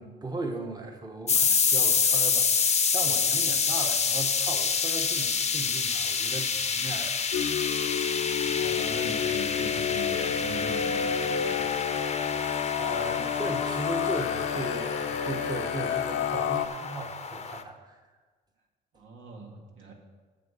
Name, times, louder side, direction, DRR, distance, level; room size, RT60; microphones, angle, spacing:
voice 1, 0.0-7.7 12.8-18.0, right 2 dB, 20° right, 3 dB, 1.3 m, -37 dB
sound 1, 1.3-17.6, left 5 dB, 35° left, 0.8 m, -28 dB
sound 2, 7.3-16.7, left 8 dB, 75° left, 0.7 m, -30 dB
voice 2, 8.3-12.1 18.9-19.9, right 3 dB, 80° right, 0 dB, 2.1 m, -41 dB
9.2 x 6.9 x 6.9 m, 1.4 s
cardioid pair, 90°, 20 cm